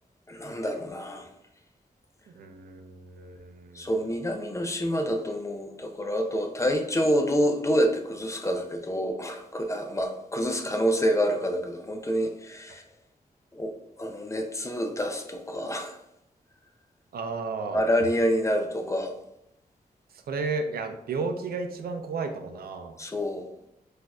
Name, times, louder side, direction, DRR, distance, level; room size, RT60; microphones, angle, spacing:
voice 1, 0.3-1.3 3.7-12.8 13.5-13.7 14.0-16.0 17.7-19.1 23.0-23.5, equal, 20° left, 5 dB, 0.4 m, -27 dB
voice 2, 2.3-3.9 17.1-17.8 20.3-23.0, right 4 dB, 85° right, 6 dB, 0.4 m, -33 dB
4.0 x 2.5 x 2.3 m, 0.81 s
wide cardioid pair, 105°, 15 cm